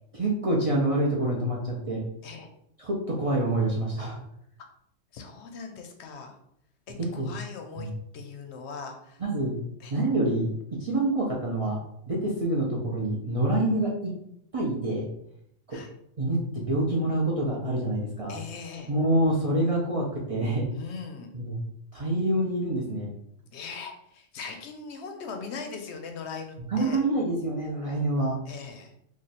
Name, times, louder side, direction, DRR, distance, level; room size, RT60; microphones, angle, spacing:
voice 1, 0.2-2.0 2.8-4.2 7.0-7.3 7.8-8.0 9.2-9.6 9.9-11.8 12.1-14.1 14.5-15.1 15.7-15.8 16.2-18.4 18.9-20.7 21.3-21.6 21.9-23.1 26.7-28.4, right 1 dB, 45° right, -4 dB, 0.4 m, -26 dB
voice 2, 5.1-6.4 6.9-9.2 9.8-9.9 15.7-15.9 18.3-18.9 20.7-21.3 23.5-27.0 28.5-28.9, left 5 dB, 65° left, 4 dB, 0.8 m, -40 dB
3.1 x 2.4 x 4.0 m, 0.74 s
omnidirectional pair, 1.3 m